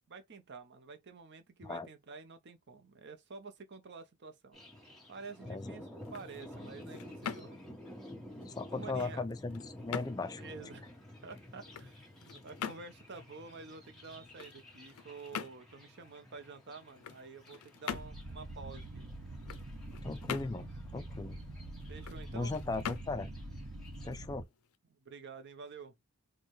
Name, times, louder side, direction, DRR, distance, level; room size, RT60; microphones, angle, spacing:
voice 1, 0.1-4.6 5.1-7.6 8.7-9.2 10.4-11.0 11.2-19.1 21.9-22.6 24.9-26.0, right 4 dB, 50° right, 0.7 m, -49 dB
Thunder, 4.5-24.1, left 1 dB, ahead, 1.3 m, -51 dB
sound 1, 5.9-24.8, left 8 dB, 85° left, 0.4 m, -46 dB
voice 2, 8.5-10.4 20.0-20.7 20.9-21.4 22.3-23.3 24.0-24.4, left 3 dB, 15° left, 0.4 m, -37 dB
sound 2, 17.9-24.4, right 1 dB, 70° right, 1.0 m, -45 dB
4.4 x 2.2 x 3.1 m
head